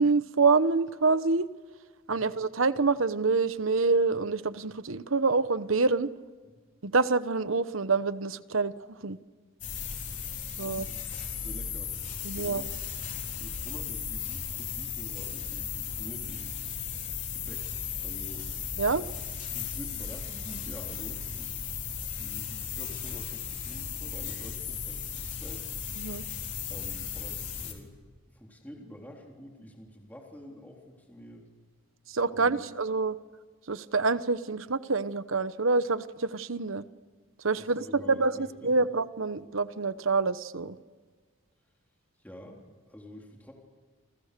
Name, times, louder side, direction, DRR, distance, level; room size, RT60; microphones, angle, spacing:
voice 1, 0.0-1.5 2.1-6.1 6.8-9.2 10.6-10.8 12.2-12.6 18.8-19.0 26.0-26.2 32.1-33.1 33.7-36.8 37.4-38.3 38.6-40.8, right 4 dB, 70° right, 14 dB, 1.0 m, -26 dB
sound 1, 9.6-27.7, left 7 dB, 35° left, 4.1 m, -36 dB
voice 2, 10.6-12.8 13.4-16.6 17.3-18.5 19.5-21.5 22.2-25.7 26.7-28.0 28.3-31.5 32.3-32.6 37.5-38.7 42.2-43.5, equal, 10° left, 0 dB, 3.5 m, -47 dB
28.5 x 28.0 x 6.8 m, 1.5 s
head